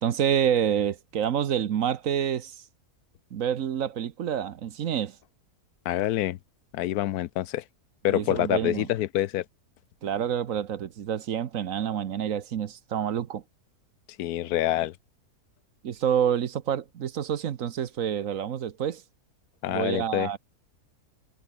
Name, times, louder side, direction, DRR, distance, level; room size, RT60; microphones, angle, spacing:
voice 1, 0.0-2.6 3.3-5.2 8.1-8.9 10.0-13.4 15.8-19.0 19.7-20.4, right 9 dB, 60° right, 1.2 m, -28 dB
voice 2, 5.8-6.4 6.7-7.6 8.0-9.4 14.2-14.9 19.6-20.3, left 14 dB, 80° left, 1.1 m, -26 dB
omnidirectional pair, 1.7 m